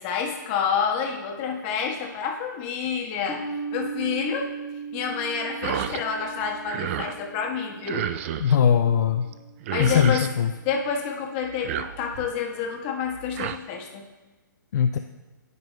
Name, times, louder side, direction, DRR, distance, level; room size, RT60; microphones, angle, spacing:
voice 1, 0.0-3.4 3.7-4.5 4.9-8.1 9.7-10.2 10.6-14.0, left 6 dB, 30° left, 1 dB, 1.2 m, -28 dB
sound 1, 3.3-10.0, right 5 dB, 10° left, 1.7 m, -38 dB
sound 2, 5.6-6.0 6.4-7.2 7.9-8.6 9.3-9.4 9.6-10.3 11.5-12.3 13.1-13.6, right 10 dB, 40° right, 0.4 m, -31 dB
voice 2, 8.4-9.3 9.8-10.5 14.7-15.0, left 8 dB, 55° left, 5 dB, 0.4 m, -20 dB
16.0 x 5.3 x 2.3 m, 1.2 s
hypercardioid pair, 140°, 11 cm